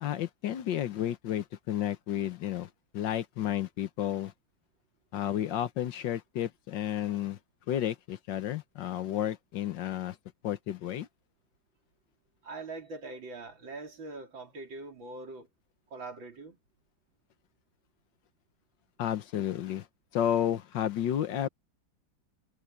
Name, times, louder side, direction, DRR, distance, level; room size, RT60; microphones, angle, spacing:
voice 1, 0.0-4.3 5.1-7.4 7.7-10.2 10.4-11.1 19.0-19.9 20.1-21.5, left 11 dB, 70° left, 1.5 m, -32 dB
voice 2, 12.4-15.5 15.9-16.6, right 3 dB, 75° right, 4.1 m, -42 dB
omnidirectional pair, 2.1 m